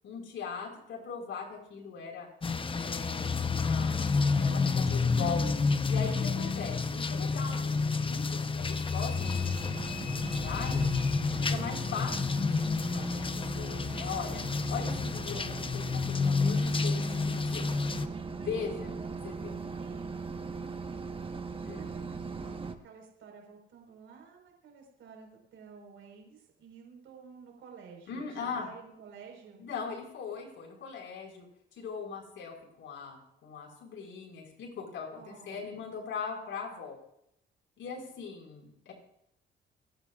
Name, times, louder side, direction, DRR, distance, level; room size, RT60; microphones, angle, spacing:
voice 1, 0.0-2.3 2.8-5.6 5.9-10.9 11.5-14.4 14.7-17.7 18.4-18.9 19.2-19.6 21.6-21.9 28.1-28.7 29.6-31.5 31.8-37.0 37.8-38.9, left 5 dB, 75° left, 0 dB, 5.5 m, -40 dB
sound 1, 2.4-18.1, left 4 dB, 25° left, 0.9 m, -30 dB
sound 2, 8.7-12.0, left 6 dB, 45° left, 5.5 m, -48 dB
sound 3, 9.1-22.7, right 4 dB, 25° right, 1.3 m, -40 dB
voice 2, 18.7-19.1 19.4-20.2 20.9-21.1 21.7-29.6 35.1-35.7, right 5 dB, 80° right, 1 dB, 4.9 m, -52 dB
29.5 x 11.5 x 2.5 m, 0.77 s
cardioid pair, 90°, 20 cm